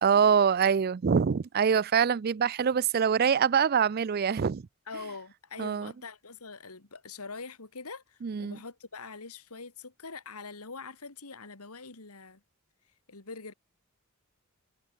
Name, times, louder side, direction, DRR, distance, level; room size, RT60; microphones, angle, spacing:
voice 1, 0.0-4.6 5.6-5.9 8.2-8.6, right 7 dB, 45° right, 0.4 m, -24 dB
voice 2, 4.9-12.4 13.1-13.5, left 4 dB, 90° left, 2.5 m, -43 dB
head